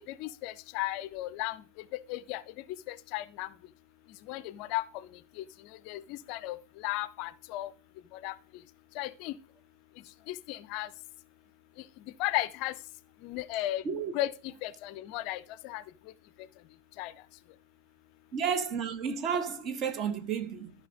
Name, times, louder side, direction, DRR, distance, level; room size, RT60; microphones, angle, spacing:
voice 1, 0.0-1.6 2.1-2.4 2.9-3.5 4.3-4.8 5.9-6.6 6.8-7.7 8.2-8.3 9.0-9.3 10.3-10.9 12.2-12.7 13.2-13.8 14.1-14.3 14.6-15.8 17.0-17.1, left 16 dB, 45° left, 0.5 m, -34 dB
voice 2, 18.3-20.7, right 7 dB, 30° right, 1.2 m, -32 dB
13.5 x 5.5 x 3.7 m
figure-of-eight pair, 90°, 0 cm